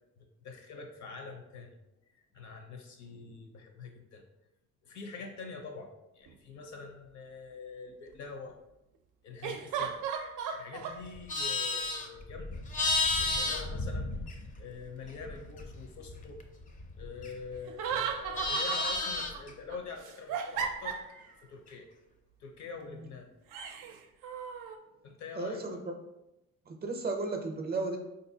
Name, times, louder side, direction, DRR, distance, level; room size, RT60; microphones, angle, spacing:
voice 1, 0.2-1.7 2.1-4.2 4.8-8.6 9.2-10.0 10.5-14.1 14.6-16.4 17.0-21.0 21.4-21.9 22.4-23.3 25.0-25.8, left 4 dB, 70° left, 4 dB, 0.7 m, -45 dB
sound 1, 6.3-6.4 9.4-11.0 17.7-19.4 19.7-21.3 23.5-24.8, right 7 dB, 85° right, 0.5 m, -36 dB
Livestock farm animals working animals, 11.0-14.8 15.1-17.6 17.9-19.5, left 3 dB, 25° left, 0.4 m, -33 dB
voice 2, 25.4-25.8 26.7-28.0, right 3 dB, 30° right, 3 dB, 0.5 m, -34 dB
3.6 x 2.6 x 2.7 m, 0.91 s
cardioid pair, 90°, 30 cm